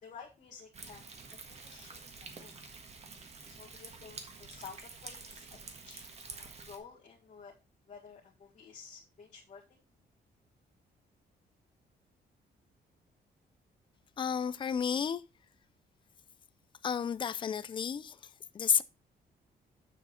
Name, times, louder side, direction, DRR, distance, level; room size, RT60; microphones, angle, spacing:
voice 1, 0.0-2.5 3.5-7.6 7.9-9.8, left 6 dB, 45° left, 1.8 m, -52 dB
Thunder, 0.7-6.8, right 4 dB, 35° right, 1.5 m, -48 dB
voice 2, 14.2-15.2 16.8-18.8, left 7 dB, 25° left, 0.4 m, -32 dB
7.2 x 7.0 x 4.3 m
cardioid pair, 160°, 18 cm